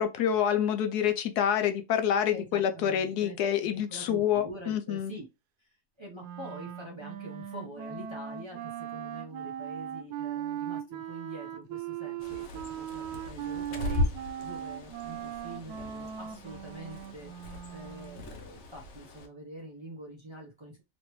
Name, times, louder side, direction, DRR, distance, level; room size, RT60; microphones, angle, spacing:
voice 1, 0.0-5.1, left 9 dB, 85° left, 1.2 m, -27 dB
voice 2, 2.3-5.3 5.6-5.7 6.0-20.8, right 1 dB, 25° right, 0.6 m, -45 dB
Wind instrument woodwind instrument, 6.2-18.2, right 10 dB, 90° right, 1.1 m, -39 dB
Bird, 12.2-19.3, left 2 dB, 60° left, 0.8 m, -37 dB
3.1 x 2.9 x 3.0 m
omnidirectional pair, 1.7 m